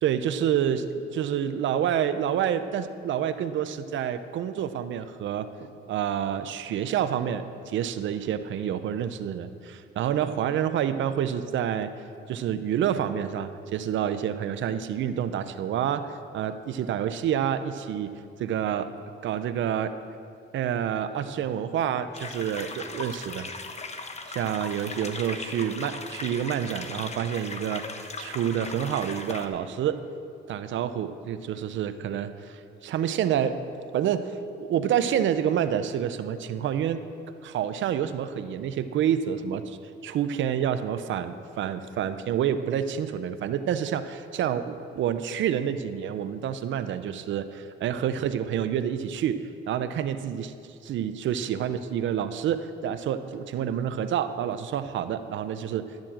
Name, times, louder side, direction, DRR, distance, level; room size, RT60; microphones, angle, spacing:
voice 1, 0.0-11.9 12.3-18.1 18.4-18.9 19.2-20.0 20.5-23.5 24.3-30.0 30.5-33.6 33.9-37.0 37.4-39.8 40.0-50.5 50.8-56.0, right 9 dB, 75° right, 11 dB, 0.7 m, -28 dB
sound 1, 22.1-29.5, left 3 dB, 35° left, 1.1 m, -38 dB
12.0 x 7.4 x 7.4 m, 2.4 s
cardioid pair, 90°, 20 cm